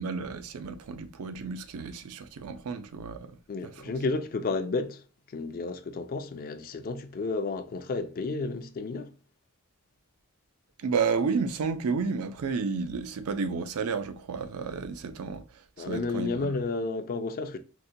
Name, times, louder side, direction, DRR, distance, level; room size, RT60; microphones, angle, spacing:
voice 1, 0.0-3.4 3.8-3.9 10.8-16.5, right 5 dB, 75° right, 0.4 m, -31 dB
voice 2, 3.5-9.1 15.8-17.6, left 3 dB, 40° left, 0.4 m, -32 dB
4.0 x 2.1 x 2.6 m
head